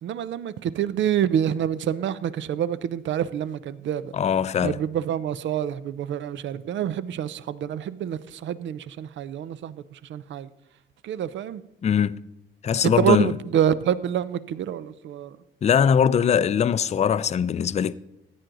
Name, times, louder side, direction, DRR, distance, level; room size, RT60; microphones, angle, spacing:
voice 1, 0.0-4.1 4.6-10.5 11.0-11.6 12.8-15.4, right 10 dB, 70° right, 0.6 m, -27 dB
voice 2, 4.1-4.8 11.8-12.2 12.6-13.4 15.6-17.9, left 8 dB, 35° left, 0.4 m, -21 dB
14.5 x 9.3 x 3.9 m
cardioid pair, 90°, 20 cm